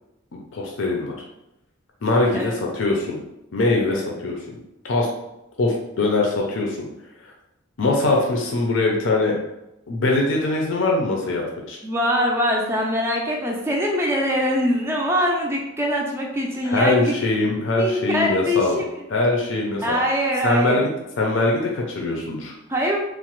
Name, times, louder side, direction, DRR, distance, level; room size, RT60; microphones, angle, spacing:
voice 1, 0.3-1.1 2.0-3.2 3.5-4.6 4.8-5.1 5.6-6.9 7.8-9.3 9.9-11.8 16.6-18.8 19.1-20.0 20.4-20.9 21.2-22.5, left 2 dB, 65° left, -1 dB, 0.5 m, -22 dB
voice 2, 11.8-17.1 17.8-18.8 19.8-20.8 22.7-23.0, equal, 10° right, -1 dB, 0.4 m, -23 dB
3.0 x 2.1 x 3.0 m, 0.90 s
head